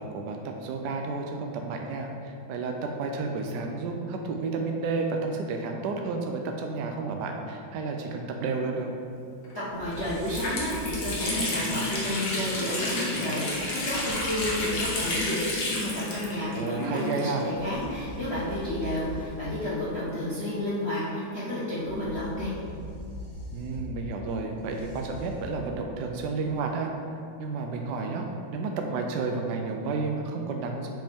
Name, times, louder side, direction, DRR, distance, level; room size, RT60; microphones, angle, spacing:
voice 1, 0.0-8.9 16.5-17.5 23.5-26.9 27.4-28.3 28.5-30.9, right 4 dB, 75° right, 2 dB, 1.0 m, -31 dB
Water tap faucet, 9.4-9.5 9.9-17.6 17.9-18.0 18.8-20.4, left 2 dB, 55° left, 1.6 m, -32 dB
sound 1, 9.7-11.4 13.8-15.1 17.4-19.6 21.7-25.9, equal, 80° left, 2.2 m, -41 dB
voice 2, 9.7-22.5, left 1 dB, 35° left, -11 dB, 1.2 m, -31 dB
7.7 x 5.1 x 3.5 m, 2.5 s
omnidirectional pair, 2.3 m